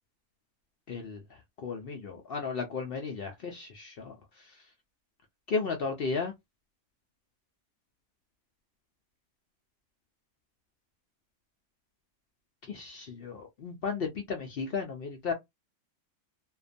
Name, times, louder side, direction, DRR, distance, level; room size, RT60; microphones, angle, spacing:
voice 1, 0.9-1.2 1.6-4.2 5.5-6.3 12.7-15.3, left 5 dB, 60° left, 0.6 m, -34 dB
2.4 x 2.2 x 2.5 m
omnidirectional pair, 1.5 m